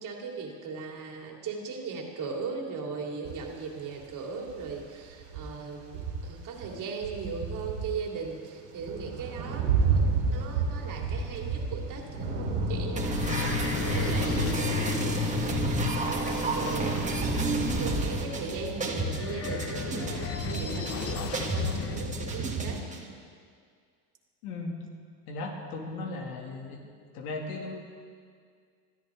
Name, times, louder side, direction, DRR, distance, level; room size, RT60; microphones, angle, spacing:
voice 1, 0.0-15.8 16.1-22.8, right 5 dB, 45° right, 0 dB, 2.8 m, -38 dB
sound 1, 3.3-4.0 4.4-6.8 7.0-22.8, right 5 dB, 85° right, 3.9 m, -33 dB
sound 2, 12.0-22.4, left 8 dB, 30° left, 1.0 m, -35 dB
sound 3, 13.0-23.0, right 2 dB, 15° right, 1.9 m, -31 dB
voice 2, 24.4-24.7 25.3-26.8 27.1-27.7, left 3 dB, 80° left, 1 dB, 2.7 m, -36 dB
21.5 x 13.0 x 3.8 m, 2.1 s
supercardioid pair, 115°, 44 cm